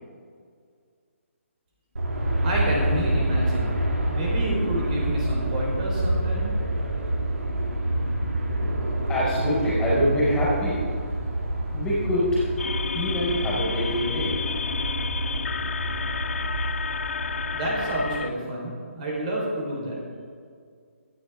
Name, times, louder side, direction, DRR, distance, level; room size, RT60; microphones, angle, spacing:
Aircraft, 2.0-18.1, right 1 dB, 85° right, 2.8 m, -27 dB
voice 1, 2.4-3.8 4.1-6.5 17.5-20.0, right 1 dB, 35° right, -3 dB, 4.3 m, -29 dB
voice 2, 9.1-10.8 11.7-12.5 12.9-14.4, equal, 10° left, -7 dB, 4.5 m, -25 dB
sound 1, 12.6-18.3, left 6 dB, 65° left, 0.5 m, -31 dB
25.0 x 10.0 x 3.7 m, 2.2 s
hypercardioid pair, 160°, 7 cm